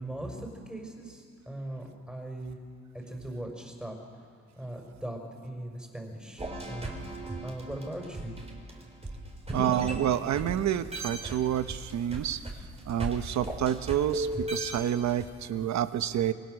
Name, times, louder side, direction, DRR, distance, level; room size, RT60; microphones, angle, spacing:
voice 1, 0.0-2.6 3.1-3.9 4.6-7.1 7.4-8.3, right 1 dB, 5° right, 2 dB, 5.0 m, -39 dB
sound 1, 6.4-10.6 10.9-15.3, right 1 dB, 20° right, 4.0 m, -36 dB
voice 2, 9.5-12.4 12.9-16.3, right 10 dB, 65° right, 11 dB, 1.0 m, -28 dB
26.0 x 20.5 x 6.4 m, 2.2 s
cardioid pair, 90°, 30 cm